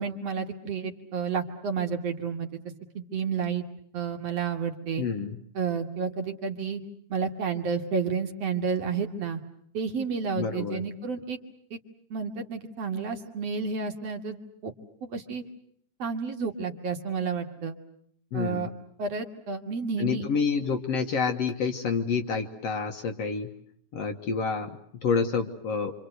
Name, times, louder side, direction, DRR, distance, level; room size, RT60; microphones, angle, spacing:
voice 1, 0.0-2.6 2.9-3.6 3.9-5.0 5.5-6.8 7.1-9.4 9.7-11.4 11.7-11.8 12.1-14.7 15.0-15.4 16.0-17.8 18.3-18.7 19.0-20.3, right 5 dB, 55° right, 4 dB, 2.6 m, -31 dB
voice 2, 5.0-5.4 10.4-10.8 18.3-18.7 20.0-23.5 23.9-25.9, left 5 dB, 60° left, 6 dB, 2.1 m, -28 dB
26.5 x 26.5 x 8.0 m, 0.66 s
omnidirectional pair, 3.8 m